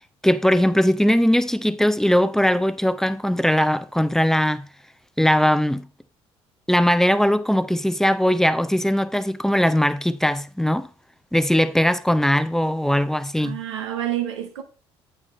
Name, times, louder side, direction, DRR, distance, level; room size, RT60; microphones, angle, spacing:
voice 1, 0.2-4.6 5.2-5.8 6.7-10.9 11.3-13.6, equal, 5° left, 0.5 m, -20 dB
voice 2, 13.4-14.6, right 12 dB, 80° right, 0.8 m, -28 dB
8.4 x 5.0 x 4.3 m
hypercardioid pair, 55°, 14 cm